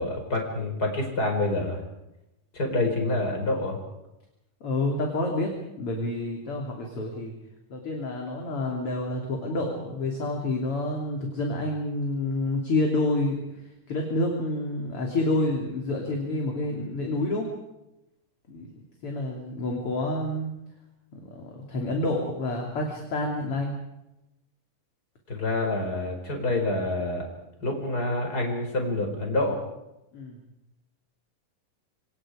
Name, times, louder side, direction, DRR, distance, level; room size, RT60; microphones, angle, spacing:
voice 1, 0.0-1.8 2.5-3.8 25.3-27.3 27.6-29.6, left 2 dB, 25° left, 2 dB, 5.5 m, -27 dB
voice 2, 4.6-5.5 5.8-7.3 7.7-13.4 13.9-17.5 18.5-18.7 19.0-20.5 21.3-23.7 30.1-30.4, left 2 dB, 40° left, 1 dB, 3.6 m, -28 dB
26.5 x 26.5 x 5.0 m, 0.90 s
omnidirectional pair, 4.1 m